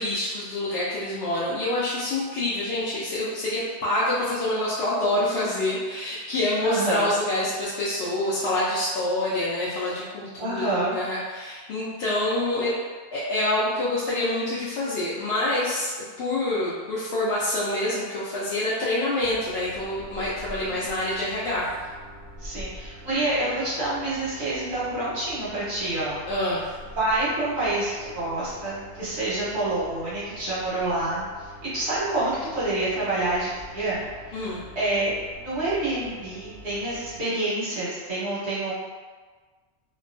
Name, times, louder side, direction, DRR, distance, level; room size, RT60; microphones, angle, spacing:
voice 1, 0.0-12.7 13.1-21.7 26.3-26.6 34.3-34.6, left 1 dB, 70° left, -8 dB, 0.8 m, -26 dB
voice 2, 6.6-7.1 10.4-10.9 22.4-26.2 27.0-31.3 31.7-34.0 34.3-34.4 34.7-38.7, right 2 dB, 70° right, -10 dB, 1.4 m, -27 dB
sound 1, 19.2-37.2, equal, 25° right, 1.4 m, -45 dB
2.9 x 2.2 x 2.5 m, 1.4 s
omnidirectional pair, 1.2 m